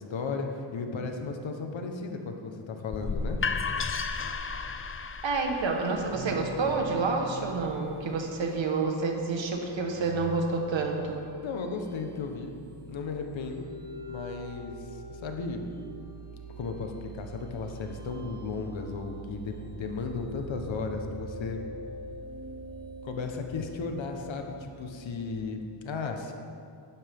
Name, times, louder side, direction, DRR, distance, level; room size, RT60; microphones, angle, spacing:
voice 1, 0.0-3.4 11.4-13.7 14.1-15.6 16.6-21.6 23.0-26.3, left 4 dB, 75° left, 4 dB, 1.3 m, -35 dB
sound 1, 2.9-8.7, left 4 dB, 30° left, 0.5 m, -35 dB
voice 2, 5.2-11.3, right 3 dB, 75° right, 3 dB, 1.5 m, -29 dB
sound 2, 6.1-25.3, right 3 dB, 45° right, 2.0 m, -44 dB
11.5 x 10.5 x 3.6 m, 2.4 s
cardioid pair, 95°, 46 cm